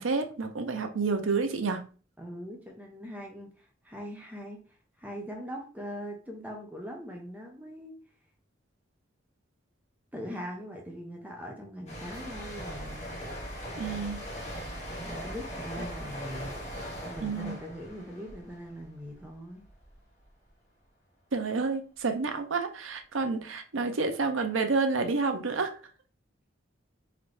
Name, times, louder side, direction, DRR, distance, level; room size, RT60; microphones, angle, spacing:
voice 1, 0.0-1.8 13.8-14.2 17.2-17.6 21.3-25.7, right 4 dB, 90° right, 0.7 m, -29 dB
voice 2, 2.2-4.6 5.0-7.9 10.1-13.2 15.0-16.5 17.0-19.6, equal, 10° right, 0.7 m, -41 dB
sound 1, 11.9-19.3 19.6-19.9, equal, 35° left, 1.3 m, -40 dB
4.0 x 3.1 x 3.2 m
head